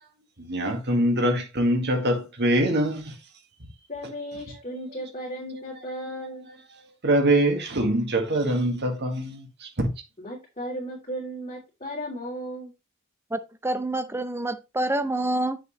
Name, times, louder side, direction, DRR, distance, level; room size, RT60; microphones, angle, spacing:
voice 1, 0.4-3.2 5.5-5.6 7.0-9.9, right 1 dB, 55° right, 1.9 m, -24 dB
voice 2, 3.9-6.5 10.2-12.7, equal, 30° left, 3.1 m, -35 dB
voice 3, 13.3-15.6, right 1 dB, 10° right, 0.6 m, -27 dB
9.0 x 6.6 x 3.2 m
head